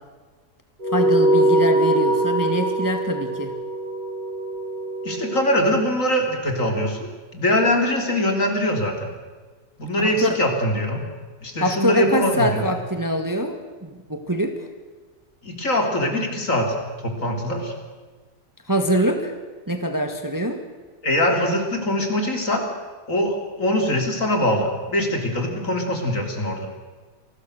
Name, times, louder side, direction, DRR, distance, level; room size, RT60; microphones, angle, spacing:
sound 1, 0.8-5.6, right 1 dB, 70° right, 7.1 m, -22 dB
voice 1, 0.9-3.5 10.0-10.4 11.6-14.7 18.7-19.3 19.7-20.6, equal, 10° right, 5 dB, 1.6 m, -24 dB
voice 2, 5.0-9.1 9.8-11.0 11.4-12.7 15.4-16.7 17.0-17.7 21.0-22.7 23.1-26.7, left 1 dB, 50° left, 3 dB, 3.9 m, -22 dB
28.0 x 21.0 x 6.6 m, 1.4 s
omnidirectional pair, 1.8 m